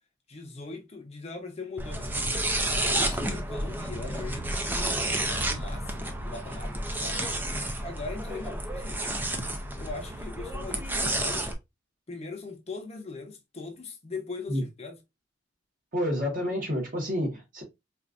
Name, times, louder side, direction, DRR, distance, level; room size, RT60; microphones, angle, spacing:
voice 1, 0.3-2.2 2.7-7.2 7.8-9.0 9.8-11.5 12.1-15.0, left 3 dB, 35° left, 0.7 m, -40 dB
sound 1, 1.8-11.5, right 1 dB, 10° right, 0.4 m, -30 dB
voice 2, 15.9-17.6, equal, 45° right, 1.3 m, -29 dB
4.2 x 2.5 x 2.4 m
head